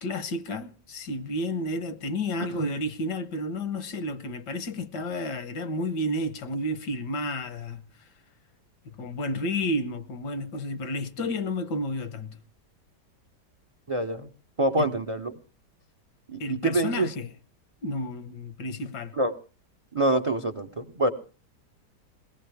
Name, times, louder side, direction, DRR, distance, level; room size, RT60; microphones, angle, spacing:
voice 1, 0.0-8.1 8.8-12.4 14.8-14.9 16.4-17.3 17.8-19.1, left 1 dB, 80° left, 1.6 m, -31 dB
voice 2, 13.9-14.3 14.6-15.4 16.3-17.1 19.2-19.3 19.9-21.1, right 1 dB, 55° right, 0.3 m, -26 dB
21.5 x 17.5 x 3.4 m
omnidirectional pair, 1.8 m